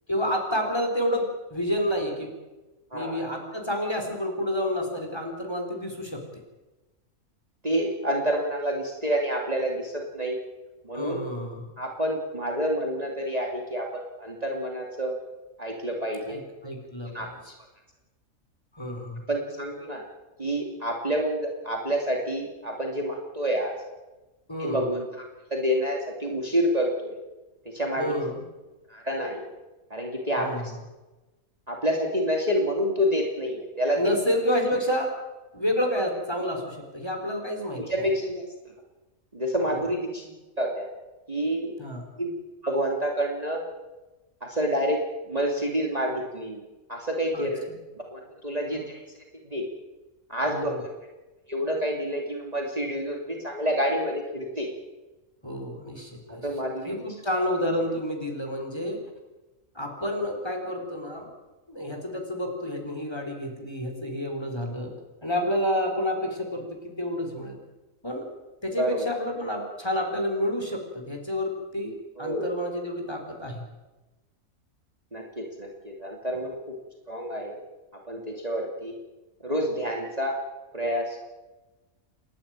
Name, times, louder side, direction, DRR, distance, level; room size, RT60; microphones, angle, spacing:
voice 1, 0.1-2.3 2.9-6.2 10.9-11.7 16.3-17.3 18.7-19.2 24.5-24.8 28.0-28.4 30.4-30.8 34.0-35.1 35.5-38.1 39.6-39.8 41.8-42.1 47.3-47.5 48.7-48.8 50.5-50.8 55.4-56.5 56.9-59.0 59.7-61.3 61.7-64.9 65.2-67.6 68.0-68.3 68.6-73.6 76.3-76.4, equal, 15° left, 2 dB, 4.4 m, -29 dB
voice 2, 2.9-3.3 7.6-10.4 10.8-11.3 11.8-15.2 15.6-16.4 17.1-17.5 19.3-20.0 20.4-23.7 24.6-25.3 25.5-27.2 27.6-28.1 28.9-29.5 29.9-30.5 31.7-34.1 37.8-38.5 39.3-40.9 41.3-41.7 42.2-42.4 42.6-43.6 44.4-45.0 45.3-46.6 46.9-47.7 48.0-49.0 49.4-49.7 50.3-50.9 51.5-54.7 56.3-57.0 68.7-69.1 72.2-72.5 75.1-76.7 77.1-77.6 78.1-78.9 79.4-80.4 80.7-81.2, equal, 25° right, 0 dB, 2.8 m, -28 dB
29.0 x 11.5 x 9.0 m, 1.1 s
omnidirectional pair, 1.5 m